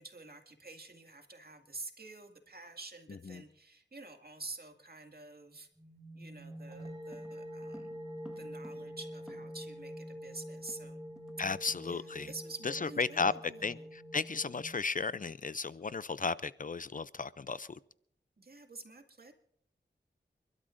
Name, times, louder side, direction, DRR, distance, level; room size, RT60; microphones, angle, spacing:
voice 1, 0.0-5.7 6.1-8.0 8.4-11.0 11.8-14.0 18.4-19.3, right 3 dB, 55° right, 2.1 m, -48 dB
sound 1, 5.8-14.7, equal, 25° right, 5.0 m, -46 dB
sound 2, 7.1-9.8 10.0-10.1 10.4-11.4 11.7-11.9 12.3-12.5, equal, 5° right, 1.5 m, -56 dB
voice 2, 11.4-12.3 13.0-13.3 13.6-13.8 14.1-17.8, left 4 dB, 45° left, 0.4 m, -34 dB
29.5 x 12.5 x 2.6 m
cardioid pair, 45°, 19 cm